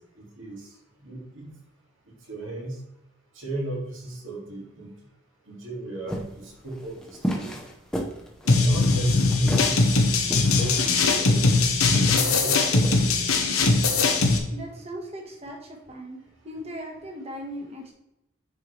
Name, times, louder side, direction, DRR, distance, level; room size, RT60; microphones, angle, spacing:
voice 1, 0.2-0.7 1.0-1.5 2.3-2.8 3.4-4.9 5.5-7.0 7.3-7.5 8.4-10.0 10.5-11.3 12.4-13.2 14.2-14.4, right 2 dB, 65° right, -2 dB, 2.3 m, -34 dB
sound 1, 6.1-13.5, equal, 5° left, 0.8 m, -34 dB
sound 2, 8.5-14.4, left 3 dB, 85° left, 1.2 m, -20 dB
voice 2, 14.5-15.6 15.9-16.2 16.4-17.9, equal, 30° right, 0 dB, 1.5 m, -38 dB
9.7 x 4.6 x 3.3 m, 0.85 s
head